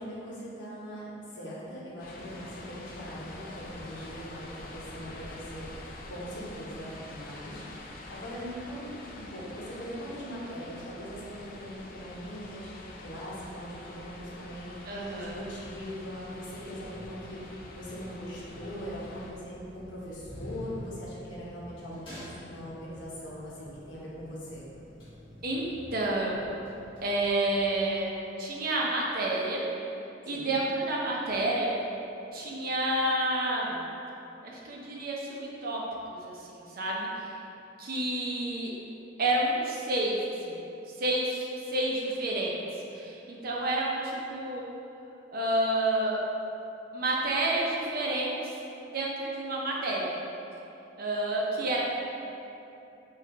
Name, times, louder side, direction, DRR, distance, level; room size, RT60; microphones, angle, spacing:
voice 1, 0.0-24.7 30.3-30.6, equal, 80° left, -6 dB, 1.1 m, -41 dB
sound 1, 2.0-19.3, left 2 dB, 50° left, 0.5 m, -46 dB
voice 2, 14.9-15.3 25.4-26.5 27.0-29.6 30.3-31.7 32.3-33.8 34.4-35.8 36.1-37.4 37.8-38.7 39.2-40.6 41.0-42.6 42.9-44.6 45.3-46.2 46.9-48.3 48.9-50.1 51.0-51.8, right 1 dB, 50° right, -3 dB, 0.7 m, -29 dB
sound 2, 15.1-28.0, equal, 30° left, 1.5 m, -48 dB
5.3 x 2.5 x 3.9 m, 2.9 s
head